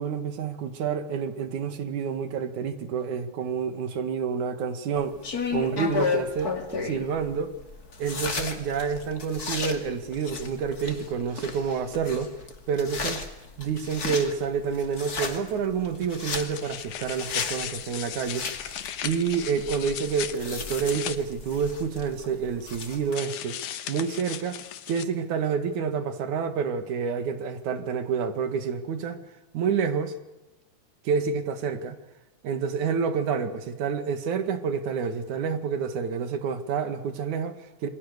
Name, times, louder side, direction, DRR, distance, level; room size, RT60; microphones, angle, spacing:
voice 1, 0.0-5.2 5.5-7.5 8.0-12.3 12.7-13.3 13.6-18.5 19.0-23.6 23.9-24.6 24.9-29.2 29.5-30.2 31.0-32.0 32.4-37.9, right 6 dB, 85° right, 3.3 m, -28 dB
sound 1, 4.9-23.2, left 4 dB, 35° left, 2.7 m, -34 dB
sound 2, 16.3-21.2 23.1-25.0, left 11 dB, 85° left, 2.7 m, -36 dB
28.5 x 23.5 x 6.7 m
omnidirectional pair, 3.3 m